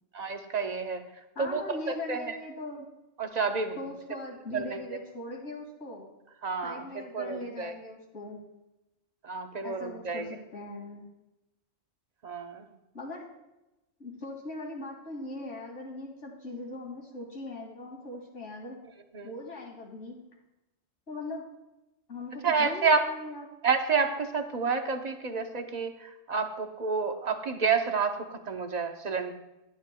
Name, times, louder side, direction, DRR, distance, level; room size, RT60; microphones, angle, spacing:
voice 1, 0.1-1.0 1.4-2.3 3.2-3.8 4.5-5.0 6.4-6.9 7.1-7.7 9.2-10.3 12.2-12.7 19.1-19.3 22.4-23.0 23.6-29.3, right 5 dB, 40° right, 6 dB, 0.8 m, -29 dB
voice 2, 1.3-2.9 3.8-6.1 6.6-8.4 9.6-11.1 12.9-13.3 14.0-18.8 19.2-20.2 21.1-21.4 22.1-23.5, left 2 dB, 70° left, -1 dB, 2.7 m, -40 dB
13.5 x 10.0 x 2.2 m, 0.95 s
omnidirectional pair, 1.3 m